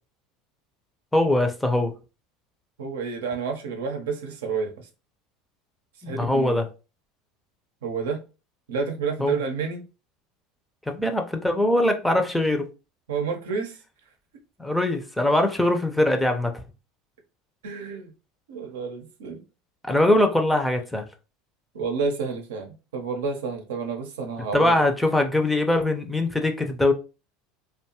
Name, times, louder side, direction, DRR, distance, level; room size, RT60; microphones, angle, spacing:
voice 1, 1.1-1.9 6.0-6.7 9.2-9.4 10.9-12.7 14.6-16.5 19.8-21.1 24.5-26.9, left 1 dB, 5° left, 0.5 m, -22 dB
voice 2, 2.8-4.9 6.1-6.6 7.8-8.2 8.7-9.8 13.1-13.8 17.6-18.1 18.5-19.4 21.7-24.9, right 5 dB, 90° right, 0.6 m, -29 dB
2.6 x 2.3 x 2.8 m
supercardioid pair, 100°, 0 cm